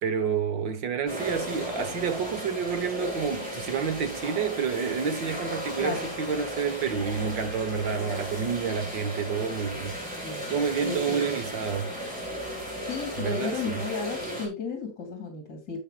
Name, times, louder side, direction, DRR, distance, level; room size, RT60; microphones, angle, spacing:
voice 1, 0.0-9.9 10.5-11.9 13.2-13.8, right 6 dB, 75° right, 2.0 m, -29 dB
sound 1, 1.1-14.5, equal, 5° right, 5.1 m, -35 dB
voice 2, 10.0-10.5 10.8-11.4 12.8-15.8, left 4 dB, 60° left, 3.5 m, -34 dB
12.0 x 7.8 x 2.5 m
omnidirectional pair, 2.0 m